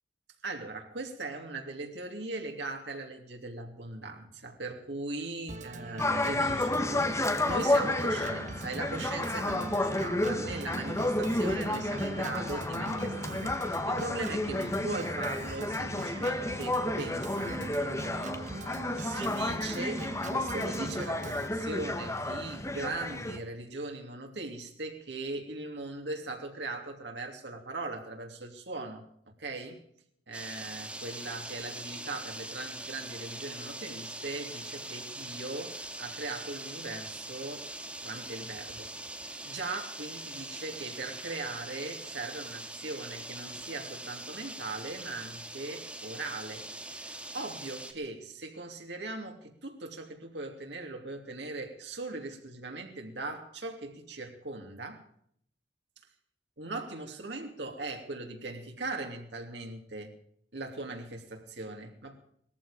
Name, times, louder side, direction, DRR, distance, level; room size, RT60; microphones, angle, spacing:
voice 1, 0.4-29.1 29.4-29.8 30.3-37.7 38.0-38.9 39.2-55.0 56.6-60.1 60.5-62.1, right 2 dB, 85° right, 2 dB, 3.0 m, -39 dB
Organ, 5.5-21.5, right 2 dB, 45° right, 1.4 m, -42 dB
sound 1, 6.0-23.4, left 1 dB, 15° left, 1.5 m, -31 dB
sound 2, 30.3-47.9, right 1 dB, 5° right, 2.0 m, -42 dB
19.0 x 14.5 x 5.1 m, 0.67 s
head